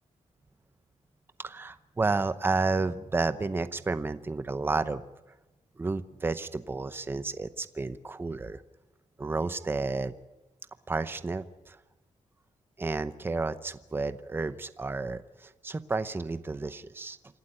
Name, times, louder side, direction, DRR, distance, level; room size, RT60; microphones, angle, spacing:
voice 1, 1.4-5.0 5.8-8.6 9.2-10.1 10.9-11.8 12.8-17.2, right 3 dB, 20° right, 13 dB, 0.7 m, -31 dB
27.5 x 12.0 x 9.9 m, 1.1 s
wide cardioid pair, 175°, 12 cm